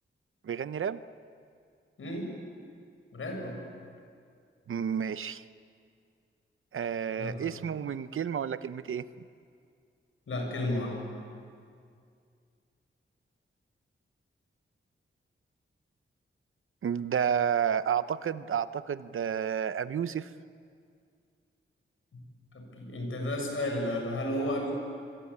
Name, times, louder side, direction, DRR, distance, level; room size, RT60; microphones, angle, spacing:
voice 1, 0.4-1.0 4.7-5.4 6.7-9.1 16.8-20.3, right 8 dB, 75° right, 14 dB, 0.8 m, -31 dB
voice 2, 2.0-2.3 3.1-3.6 7.2-7.5 10.3-11.0 22.5-24.7, left 1 dB, 75° left, 2 dB, 6.8 m, -32 dB
26.0 x 23.0 x 8.6 m, 2.3 s
wide cardioid pair, 130°, 21 cm